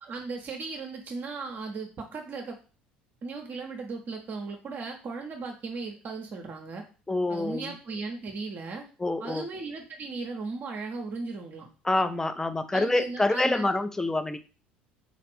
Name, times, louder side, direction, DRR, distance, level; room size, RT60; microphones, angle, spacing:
voice 1, 0.0-2.6 3.2-6.8 7.3-8.8 9.2-11.7 12.7-13.7, right 4 dB, 35° right, 2 dB, 0.6 m, -37 dB
voice 2, 7.1-7.7 9.0-9.5 11.8-14.4, left 2 dB, 10° left, 9 dB, 0.4 m, -26 dB
3.6 x 2.4 x 3.4 m, 0.35 s
figure-of-eight pair, 65°, 5 cm